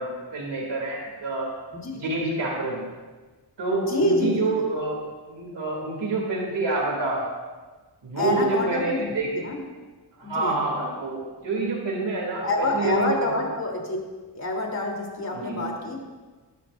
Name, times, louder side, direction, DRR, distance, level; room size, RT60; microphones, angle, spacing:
voice 1, 0.0-1.5 1.9-2.8 3.6-5.0 5.3-7.2 8.0-9.3 10.2-12.5 12.7-13.3 15.3-15.6, right 3 dB, 80° right, -2 dB, 2.9 m, -27 dB
voice 2, 1.7-2.0 3.8-4.6 8.2-9.6 10.2-10.6 12.4-14.0 14.3-16.0, left 2 dB, 40° left, 0 dB, 3.4 m, -27 dB
21.0 x 13.0 x 2.6 m, 1.3 s
wide cardioid pair, 85°, 41 cm